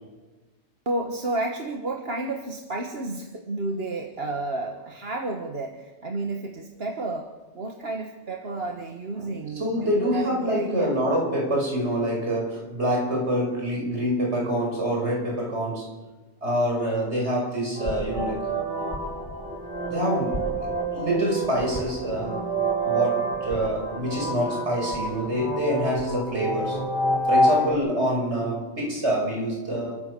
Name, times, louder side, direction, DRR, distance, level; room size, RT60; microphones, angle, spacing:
voice 1, 0.9-10.9 27.5-27.8, right 2 dB, 60° right, 3 dB, 1.8 m, -31 dB
voice 2, 9.2-15.9 16.4-18.5 19.9-22.4 22.8-26.8 27.3-30.0, equal, 75° right, -1 dB, 6.2 m, -26 dB
sound 1, 17.8-27.7, right 1 dB, 45° left, 6.6 m, -27 dB
29.0 x 14.5 x 6.9 m, 1.2 s
omnidirectional pair, 1.1 m